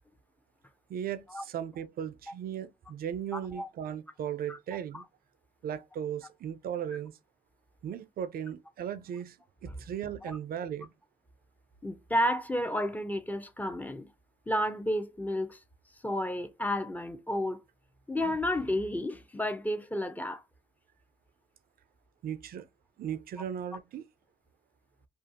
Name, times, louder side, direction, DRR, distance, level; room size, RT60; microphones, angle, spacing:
voice 1, 0.9-5.0 5.6-7.2 7.8-9.4 9.6-10.9 22.2-22.7 23.0-24.0, right 9 dB, 60° right, 0.4 m, -37 dB
voice 2, 3.3-3.7 4.5-4.6 4.9-5.0 10.2-10.4 11.8-14.1 14.5-15.6 16.0-17.6 18.1-20.4, left 1 dB, 10° left, 0.6 m, -31 dB
2.5 x 2.4 x 2.6 m
supercardioid pair, 55°, 18 cm